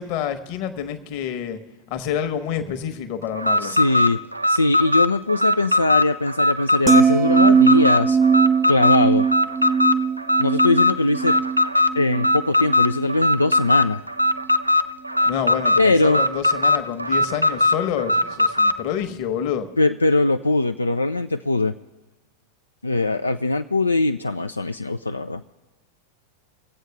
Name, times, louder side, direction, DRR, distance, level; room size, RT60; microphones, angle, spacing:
voice 1, 0.0-1.6 1.9-3.8 15.2-19.7, left 9 dB, 45° left, 8 dB, 1.1 m, -28 dB
Alarm, 3.3-18.8, left 2 dB, 85° right, 0.4 m, -20 dB
voice 2, 3.6-4.2 4.5-8.2 8.7-9.2 10.4-11.4 11.9-14.0 15.8-16.2 19.8-21.7 22.8-25.4, left 2 dB, 80° left, 7 dB, 0.3 m, -21 dB
sound 1, 6.9-13.1 13.5-13.8, right 6 dB, 20° right, 0.5 m, -20 dB
24.0 x 8.0 x 3.4 m, 1.2 s
figure-of-eight pair, 90°, 0 cm